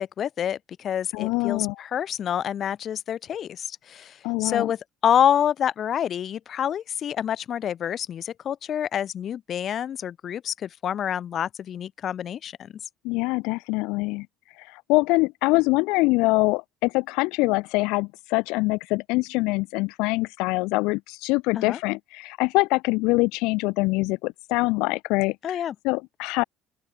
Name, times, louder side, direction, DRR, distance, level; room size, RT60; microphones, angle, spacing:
voice 1, 0.0-12.7 21.5-21.8 25.4-25.7, left 9 dB, 40° left, 3.2 m, -27 dB
voice 2, 1.1-1.8 4.2-4.7 13.0-14.3 14.6-26.4, left 24 dB, 80° left, 0.6 m, -24 dB
open air
cardioid pair, 145°, 0 cm